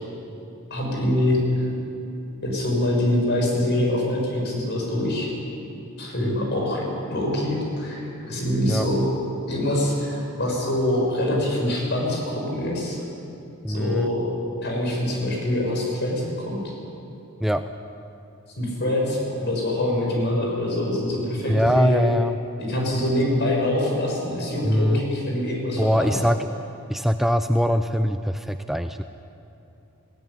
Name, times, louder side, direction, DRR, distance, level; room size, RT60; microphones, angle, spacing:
voice 1, 0.7-1.7 2.4-5.3 6.0-9.0 9.5-13.0 13.7-14.3 14.6-16.7 18.6-22.1 22.6-26.1, left 1 dB, 55° left, -1 dB, 6.9 m, -24 dB
voice 2, 13.6-14.1 17.4-17.6 21.5-22.4 24.7-25.0 25.8-26.4 26.9-29.0, equal, ahead, 8 dB, 0.5 m, -22 dB
20.0 x 18.0 x 10.0 m, 2.8 s
head